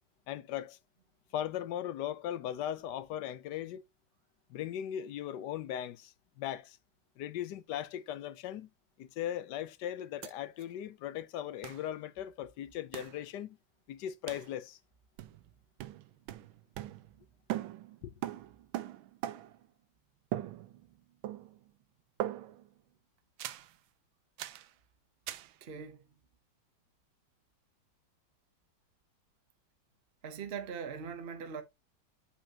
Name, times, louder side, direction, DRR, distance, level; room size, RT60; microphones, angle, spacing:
voice 1, 0.3-0.8 1.3-3.8 4.5-6.8 7.2-8.7 9.0-13.6 13.9-14.8 18.0-18.1, left 11 dB, 70° left, 1.1 m, -38 dB
sound 1, 10.2-10.3 10.6-10.7 11.6-11.9 12.9-13.2 14.3-14.5 15.2-15.5 15.8-17.2 17.5-19.7 20.3-21.0 21.2-21.7 22.2-22.7 23.4-23.7 24.4-24.7 25.3-25.5, right 13 dB, 80° right, 1.4 m, -40 dB
voice 2, 25.6-26.1 30.2-31.6, right 6 dB, 55° right, 0.6 m, -41 dB
8.4 x 5.6 x 2.8 m
omnidirectional pair, 2.3 m